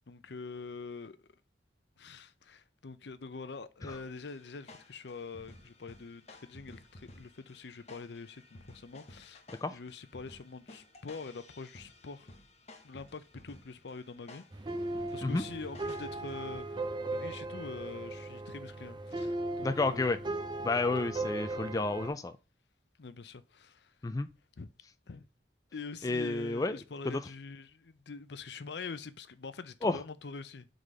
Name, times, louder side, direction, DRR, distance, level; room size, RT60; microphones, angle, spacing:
voice 1, 0.1-1.2 2.0-9.4 9.7-12.4 12.8-14.4 15.1-16.8 17.1-20.2 20.9-21.1 23.0-23.9 24.6-24.7 25.1-25.3 25.7-30.7, left 4 dB, 70° left, 0.6 m, -45 dB
sound 1, 3.9-17.0, left 2 dB, 35° left, 0.9 m, -55 dB
sound 2, 14.5-22.1, right 2 dB, 25° right, 0.6 m, -37 dB
voice 2, 19.6-20.2 20.6-22.3 24.0-24.3 26.0-26.8 27.0-27.2 29.8-30.0, left 3 dB, 20° left, 0.3 m, -31 dB
4.8 x 3.9 x 5.4 m
head